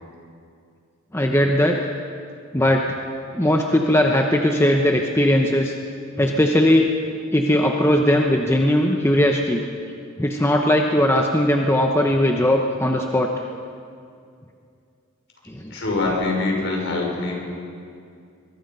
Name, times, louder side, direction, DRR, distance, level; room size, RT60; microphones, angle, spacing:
voice 1, 1.1-1.9 2.5-2.9 3.3-5.7 6.2-6.9 7.3-9.6 10.2-13.3 15.5-15.7, left 1 dB, 10° left, 2 dB, 1.0 m, -19 dB
voice 2, 15.7-17.3, left 3 dB, 55° left, -1 dB, 5.7 m, -24 dB
23.0 x 22.0 x 5.5 m, 2.4 s
head